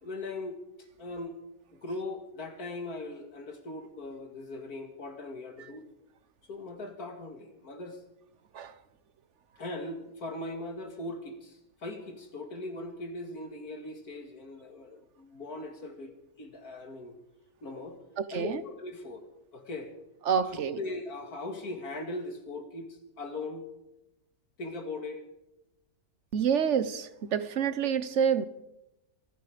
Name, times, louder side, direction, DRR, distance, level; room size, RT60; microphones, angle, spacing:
voice 1, 0.0-0.6 1.0-1.4 1.7-5.8 6.5-8.0 9.6-16.1 16.4-17.1 17.6-18.0 18.3-19.3 19.5-19.9 20.5-23.7 24.6-25.2, left 2 dB, 65° left, 2.7 m, -39 dB
voice 2, 18.2-18.6 20.3-20.8 26.3-28.5, right 7 dB, 50° right, 1.2 m, -28 dB
28.5 x 10.0 x 5.1 m
omnidirectional pair, 1.7 m